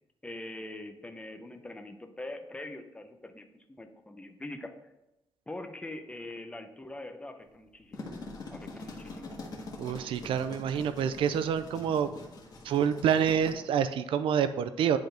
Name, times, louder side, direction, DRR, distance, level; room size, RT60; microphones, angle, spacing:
voice 1, 0.2-4.7 5.5-8.1 8.5-9.3, left 2 dB, 15° left, 6 dB, 0.7 m, -43 dB
Claws clattering on floor, 7.7-13.5, left 2 dB, 45° left, 1.6 m, -44 dB
voice 2, 9.8-12.1 12.6-15.0, right 8 dB, 85° right, 11 dB, 0.4 m, -27 dB
10.5 x 3.9 x 3.4 m, 0.93 s
cardioid pair, 120°, 9 cm